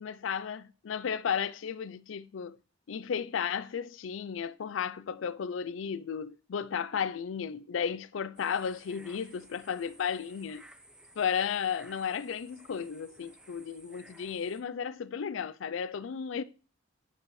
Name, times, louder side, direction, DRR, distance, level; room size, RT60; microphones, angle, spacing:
voice 1, 0.0-2.6 2.9-10.6 11.2-16.4, left 7 dB, 75° left, 0.4 m, -34 dB
sound 1, 8.3-14.6, right 1 dB, 5° right, 0.7 m, -56 dB
10.0 x 6.1 x 3.1 m
head